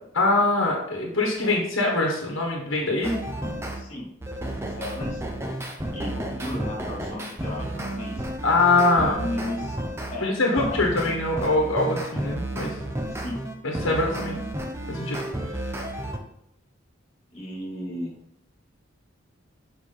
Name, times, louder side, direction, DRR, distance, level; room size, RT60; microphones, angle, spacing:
voice 1, 0.1-3.2 8.4-9.3 10.2-12.8 13.6-14.4 14.9-15.2, left 2 dB, 85° left, 0 dB, 1.3 m, -23 dB
sound 1, 3.0-3.8 4.2-10.2 10.6-16.2, right 1 dB, 15° right, 0.8 m, -32 dB
voice 2, 3.7-4.1 4.7-5.2 5.9-8.2 8.9-9.8 10.1-10.8 13.1-13.4 13.8-14.3 17.3-18.1, left 1 dB, 30° left, -3 dB, 2.5 m, -35 dB
6.7 x 4.9 x 3.9 m, 0.77 s
head